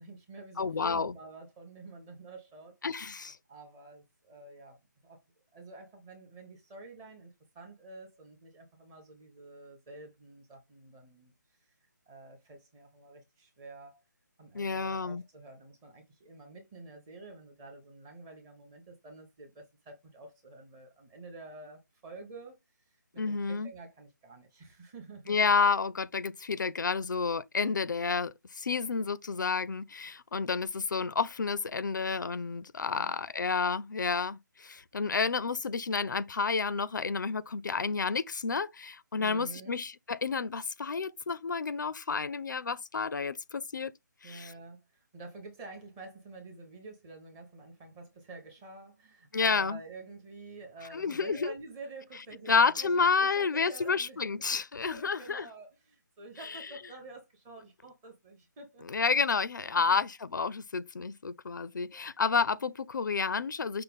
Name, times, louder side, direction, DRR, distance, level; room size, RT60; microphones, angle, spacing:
voice 1, 0.0-2.8 3.5-5.2 5.5-11.3 12.1-14.0 14.4-22.6 23.1-25.4 32.8-33.2 39.1-39.8 44.2-54.5 54.8-58.9 59.7-59.8 61.9-62.1, right 3 dB, 10° right, 0.6 m, -49 dB
voice 2, 0.6-1.1 2.8-3.4 14.5-15.2 23.2-23.7 25.3-43.9 44.2-44.5 49.3-49.8 50.9-51.5 52.5-55.5 56.4-56.6 58.9-63.8, left 5 dB, 75° left, 0.5 m, -30 dB
5.7 x 2.1 x 3.5 m
hypercardioid pair, 170°, 10 cm